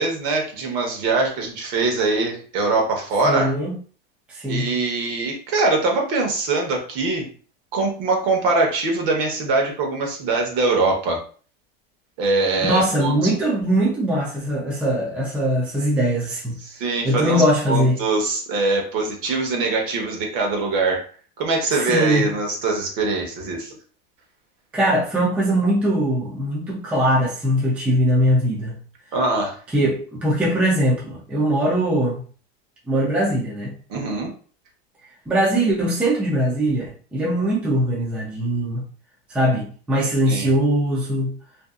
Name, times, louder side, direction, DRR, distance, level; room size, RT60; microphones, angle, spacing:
voice 1, 0.0-3.6 4.5-7.3 7.7-11.2 12.2-13.1 16.6-21.0 21.4-23.7 29.1-29.6 33.9-34.3 40.3-40.5, right 3 dB, 60° right, 1 dB, 1.0 m, -22 dB
voice 2, 3.2-3.7 4.3-4.7 12.6-16.6 17.0-18.0 21.7-22.2 24.7-28.8 29.7-32.2 32.9-33.7 35.3-38.8 39.3-41.3, equal, 5° right, -4 dB, 0.4 m, -21 dB
2.6 x 2.3 x 2.3 m, 0.41 s
supercardioid pair, 145°, 30 cm